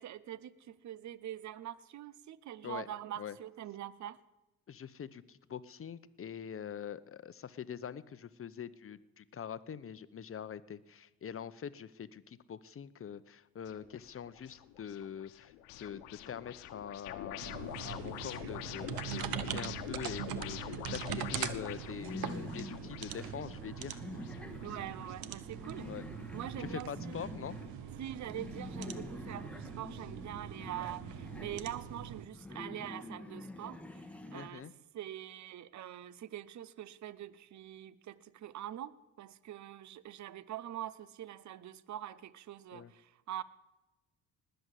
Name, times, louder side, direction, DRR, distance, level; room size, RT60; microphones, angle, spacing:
voice 1, 0.0-4.2 24.6-25.9 26.3-27.2 28.0-34.1 34.3-34.7 34.9-43.4, right 12 dB, 50° right, 18 dB, 0.8 m, -44 dB
voice 2, 4.7-15.5 15.8-24.0 25.8-26.1 26.6-27.6 34.3-34.7 42.7-42.9, left 8 dB, 35° left, 16 dB, 0.9 m, -44 dB
sound 1, 13.7-25.1, left 12 dB, 90° left, 1.1 m, -46 dB
sound 2, 17.4-32.3, right 10 dB, 70° right, 1.2 m, -42 dB
sound 3, 21.6-34.5, left 2 dB, 5° left, 1.6 m, -47 dB
19.5 x 7.9 x 8.4 m, 1.0 s
supercardioid pair, 70°, 37 cm